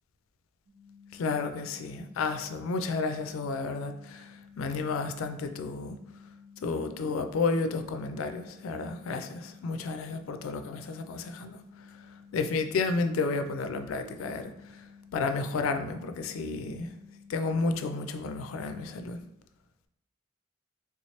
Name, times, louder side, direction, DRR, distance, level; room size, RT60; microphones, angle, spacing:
sound 1, 0.7-19.2, left 6 dB, 40° right, 0.9 m, -54 dB
voice 1, 1.1-6.0 6.6-12.1 12.3-14.9 15.1-16.9 17.3-19.2, left 4 dB, 75° left, 0.3 m, -32 dB
3.4 x 2.8 x 3.1 m
head